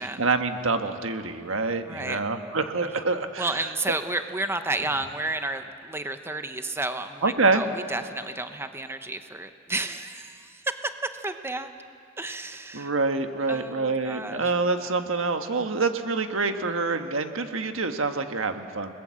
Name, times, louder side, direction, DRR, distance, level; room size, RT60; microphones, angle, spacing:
voice 1, 0.0-3.5 7.2-7.6 12.7-18.9, right 3 dB, 90° right, 7 dB, 1.4 m, -26 dB
voice 2, 1.9-2.2 3.4-11.7 12.2-12.9 13.5-14.4, right 2 dB, 10° right, 8 dB, 0.9 m, -31 dB
30.0 x 20.5 x 7.7 m, 2.5 s
head